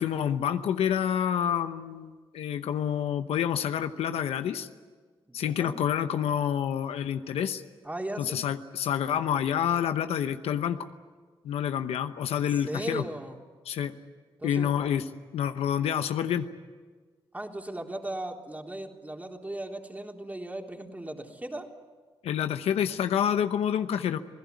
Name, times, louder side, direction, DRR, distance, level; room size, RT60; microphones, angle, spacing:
voice 1, 0.0-4.7 5.3-7.6 8.2-10.9 11.4-13.0 13.7-14.0 14.4-15.0 15.3-16.5 22.2-24.2, left 9 dB, 90° left, 9 dB, 0.9 m, -28 dB
voice 2, 5.3-5.8 7.8-8.4 12.3-13.4 14.4-14.7 17.3-21.7, right 1 dB, 15° right, 2 dB, 3.5 m, -37 dB
27.0 x 17.0 x 9.4 m, 1.5 s
cardioid pair, 60°, 10 cm